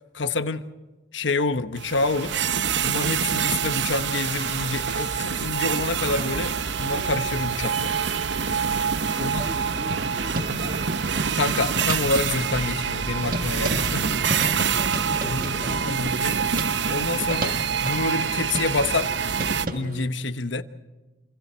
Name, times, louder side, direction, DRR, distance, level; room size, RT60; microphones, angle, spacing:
voice 1, 0.1-0.6 1.1-2.3 2.8-7.9 9.2-9.4 11.3-14.2 15.3-15.4 15.9-16.4 16.9-19.1 19.7-20.6, left 3 dB, 80° left, 10 dB, 1.2 m, -27 dB
sound 1, 1.8-19.7, right 7 dB, 70° right, 0.8 m, -26 dB
sound 2, 4.1-13.7, left 4 dB, 60° left, 2.9 m, -44 dB
voice 2, 9.0-10.9 14.4-15.9, equal, 30° right, 5 dB, 1.9 m, -40 dB
sound 3, 9.7-20.1, right 1 dB, 45° right, 1.5 m, -34 dB
27.5 x 27.0 x 4.5 m, 1.2 s
head